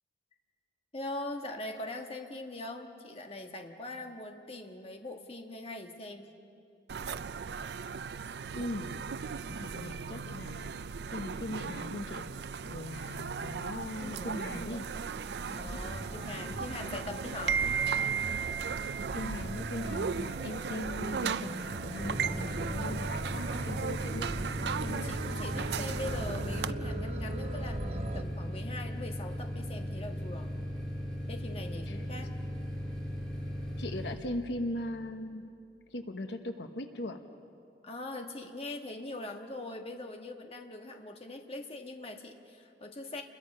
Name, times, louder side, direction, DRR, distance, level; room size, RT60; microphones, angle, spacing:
voice 1, 0.9-6.3 14.0-14.9 15.5-17.6 24.8-30.5 31.3-32.3 37.8-43.2, left 2 dB, 35° left, 3 dB, 1.4 m, -42 dB
sound 1, 6.9-26.7, right 6 dB, 70° right, 0.4 m, -36 dB
voice 2, 8.5-8.9 9.2-10.8 11.1-12.3 12.7-14.9 18.8-24.3 31.9-32.0 33.8-35.5 35.9-37.2, left 1 dB, 80° left, 7 dB, 1.1 m, -39 dB
sound 2, 15.2-28.2, right 1 dB, 35° right, 1.0 m, -41 dB
sound 3, 22.0-34.2, equal, 5° left, 2.7 m, -37 dB
29.5 x 21.5 x 5.4 m, 2.5 s
head